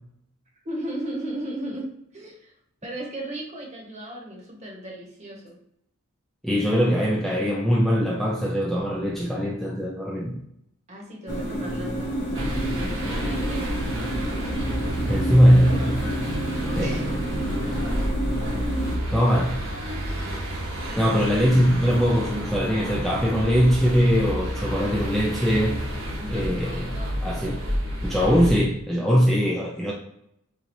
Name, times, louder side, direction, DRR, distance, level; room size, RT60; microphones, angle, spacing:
voice 1, 0.6-2.5 2.8-5.6 10.9-14.0 16.8-17.1 20.9-21.2 26.2-27.2, right 1 dB, 30° right, -2 dB, 1.1 m, -36 dB
voice 2, 6.4-10.4 15.1-16.3 16.7-17.0 19.1-19.6 21.0-25.8 26.3-26.9 27.2-27.6 28.0-29.9, equal, ahead, -4 dB, 0.4 m, -21 dB
sound 1, 11.3-19.0, right 1 dB, 50° left, 0.9 m, -29 dB
sound 2, 12.3-28.6, equal, 65° right, 1.1 m, -30 dB
4.5 x 2.7 x 2.7 m, 0.75 s
head